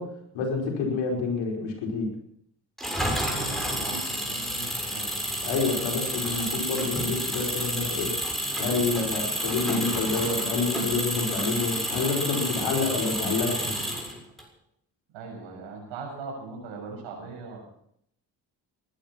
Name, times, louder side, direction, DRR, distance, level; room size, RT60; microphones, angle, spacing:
voice 1, 0.0-2.1 5.4-8.1 8.6-13.7, left 4 dB, 80° left, 1 dB, 5.2 m, -28 dB
Engine, 2.8-14.4, equal, ahead, 7.1 m, -30 dB
voice 2, 3.2-5.1 15.1-17.6, right 4 dB, 85° right, 1 dB, 6.8 m, -40 dB
19.5 x 12.0 x 6.1 m, 0.69 s
supercardioid pair, 50°, 44 cm